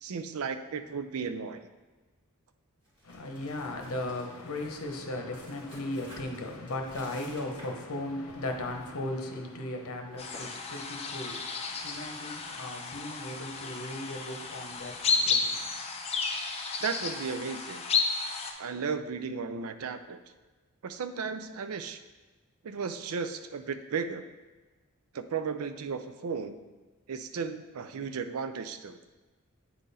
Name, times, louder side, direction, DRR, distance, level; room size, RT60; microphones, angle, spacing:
voice 1, 0.0-1.6 16.8-17.8 18.6-20.2 20.8-22.0 22.6-24.2 25.1-26.6 27.1-29.0, right 5 dB, 70° right, 0.5 m, -35 dB
sound 1, 2.8-7.9 8.3-8.9 9.2-9.4 9.9-10.5, equal, 20° right, 2.0 m, -53 dB
voice 2, 3.0-15.7, left 1 dB, 70° left, 0.9 m, -37 dB
sound 2, 10.2-18.5, left 4 dB, 30° left, 0.6 m, -32 dB
8.7 x 3.8 x 4.1 m
head